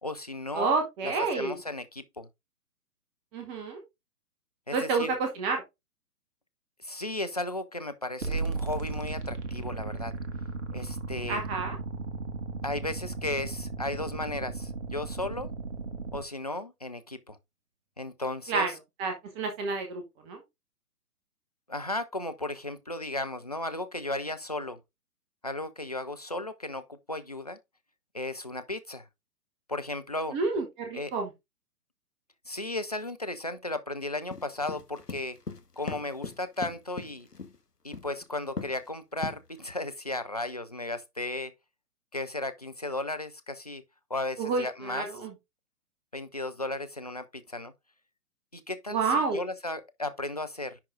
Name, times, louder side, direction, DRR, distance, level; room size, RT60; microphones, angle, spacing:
voice 1, 0.0-0.7 1.0-2.3 4.7-5.2 6.8-10.1 10.7-11.4 12.6-15.5 16.1-17.4 18.0-18.7 21.7-24.8 25.4-27.6 28.1-29.1 29.7-30.4 30.9-31.1 32.5-35.4 35.8-37.3 37.8-41.5 42.1-43.8 44.1-45.1 46.1-47.7 48.5-50.8, left 2 dB, 30° left, 0.4 m, -35 dB
voice 2, 0.5-1.6 3.3-3.8 4.7-5.6 11.3-11.8 18.5-18.7 19.0-20.4 30.3-31.3 44.4-45.3 48.9-49.4, right 4 dB, 15° right, 0.9 m, -29 dB
sound 1, 8.2-16.2, right 3 dB, 50° right, 1.8 m, -35 dB
sound 2, 34.3-37.6 37.9-38.2 38.6-38.9 39.2-39.8, left 4 dB, 85° left, 1.2 m, -38 dB
10.5 x 3.7 x 3.7 m
figure-of-eight pair, 130°, 46 cm